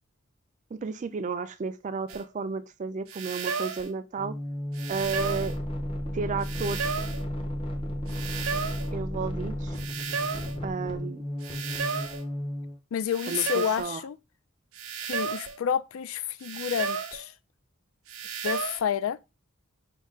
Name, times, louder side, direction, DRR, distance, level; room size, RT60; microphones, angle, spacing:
voice 1, 0.7-4.3 4.9-5.6 6.1-7.0 8.9-9.8 10.6-11.2 13.3-14.0, right 5 dB, 35° right, 0.3 m, -32 dB
sound 1, 2.1-2.3 3.1-3.9 4.8-5.6 6.4-7.3 8.1-8.9 9.8-10.6 11.4-12.2 13.1-13.9 14.8-15.6 16.4-17.2 18.1-18.8, right 5 dB, 80° right, 0.6 m, -33 dB
sound 2, 4.2-12.8, equal, 25° left, 0.7 m, -33 dB
voice 2, 12.9-14.2 15.1-17.3 18.4-19.2, left 8 dB, 75° left, 0.4 m, -29 dB
5.3 x 2.3 x 3.6 m
head